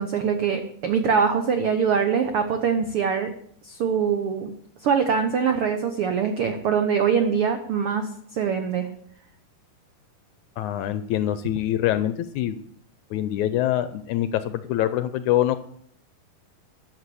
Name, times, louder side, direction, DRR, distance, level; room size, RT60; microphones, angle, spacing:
voice 1, 0.0-3.3 3.6-4.5 4.8-8.9, right 6 dB, 90° right, 7 dB, 1.2 m, -23 dB
voice 2, 10.6-12.6 13.1-15.6, left 12 dB, 80° left, 12 dB, 1.8 m, -24 dB
13.0 x 6.6 x 8.3 m, 0.65 s
omnidirectional pair, 3.9 m